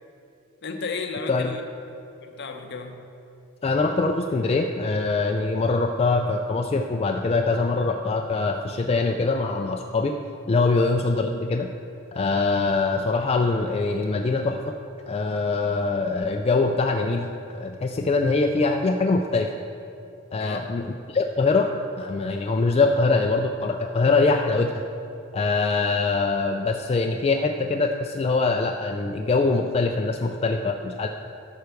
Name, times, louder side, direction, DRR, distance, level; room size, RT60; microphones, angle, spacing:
voice 1, 0.6-1.6 2.2-3.0 10.8-10.9 20.4-20.7, left 4 dB, 55° left, 5 dB, 0.8 m, -33 dB
voice 2, 3.6-10.2 10.5-11.7 12.1-14.8 15.1-19.5 20.3-21.7 22.0-24.7 25.3-31.1, left 3 dB, 30° left, 3 dB, 0.3 m, -23 dB
11.5 x 4.6 x 6.7 m, 2.7 s
head